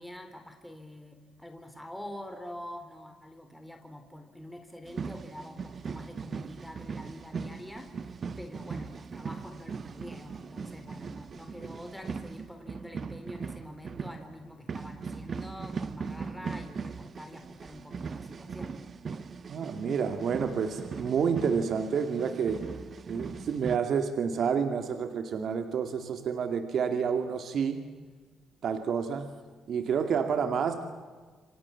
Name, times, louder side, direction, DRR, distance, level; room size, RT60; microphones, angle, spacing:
voice 1, 0.0-8.0 8.4-18.8, left 1 dB, 5° left, 5 dB, 3.9 m, -46 dB
sound 1, 4.9-23.8, right 5 dB, 45° right, 1.1 m, -39 dB
voice 2, 19.5-22.6 23.1-27.8 28.6-29.3 29.7-30.8, right 6 dB, 60° right, 7 dB, 2.4 m, -29 dB
29.0 x 25.0 x 7.3 m, 1.4 s
cardioid pair, 90°, 0 cm